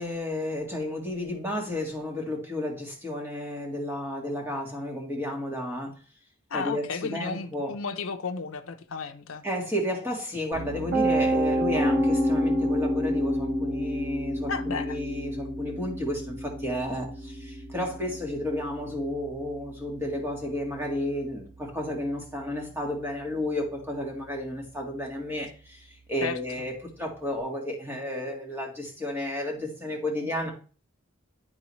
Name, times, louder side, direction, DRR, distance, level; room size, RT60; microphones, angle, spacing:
voice 1, 0.0-5.9 6.5-7.7 9.4-30.5, left 1 dB, 10° right, 1.7 m, -32 dB
voice 2, 6.5-9.4 14.5-15.0 26.2-26.7, left 5 dB, 70° left, 0.7 m, -34 dB
Piano, 10.5-22.4, equal, 60° right, 2.4 m, -30 dB
11.0 x 3.9 x 3.1 m
head